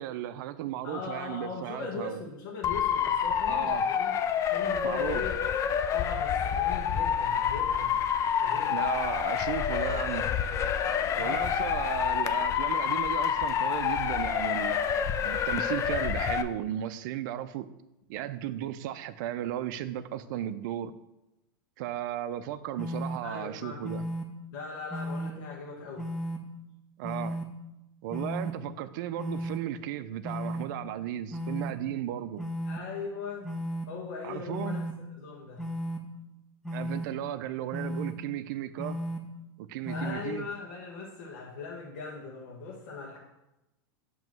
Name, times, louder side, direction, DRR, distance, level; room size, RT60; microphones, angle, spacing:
voice 1, 0.0-2.2 3.5-3.9 4.8-5.3 8.7-10.3 11.2-17.7 18.1-20.9 21.8-24.0 27.0-27.4 28.0-32.5 34.2-34.8 36.7-39.0 39.6-40.5, right 12 dB, 60° right, 0.5 m, -35 dB
voice 2, 0.8-4.2 4.5-5.4 5.8-8.8 11.2-11.5 11.7-12.4 23.2-24.0 24.5-26.1 32.7-33.5 33.9-34.8 35.2-35.7 39.9-43.2, left 4 dB, 65° left, 1.2 m, -40 dB
Motor vehicle (road) / Siren, 2.6-16.4, left 8 dB, 25° left, 0.4 m, -28 dB
sound 1, 22.8-23.2 23.8-24.2 24.9-25.3 26.0-26.4 27.0-27.4 28.1-28.5 29.2-29.6 30.2-30.6 31.3-31.7 32.4-32.8 33.4-33.9 34.5-34.9 35.6-36.0 36.6-37.1 37.7-38.1 38.8-39.2 39.8-40.1, equal, 5° left, 0.8 m, -34 dB
7.3 x 3.0 x 6.0 m
supercardioid pair, 135°, 12 cm